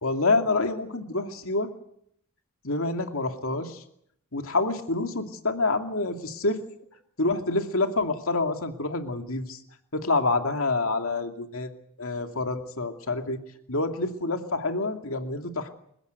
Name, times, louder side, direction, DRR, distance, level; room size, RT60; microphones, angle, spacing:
voice 1, 0.0-1.7 2.6-3.8 4.3-6.6 7.2-9.6 9.9-11.7 12.0-13.4 13.7-15.7, left 3 dB, 70° left, 5 dB, 2.5 m, -27 dB
29.0 x 16.0 x 8.2 m, 0.70 s
head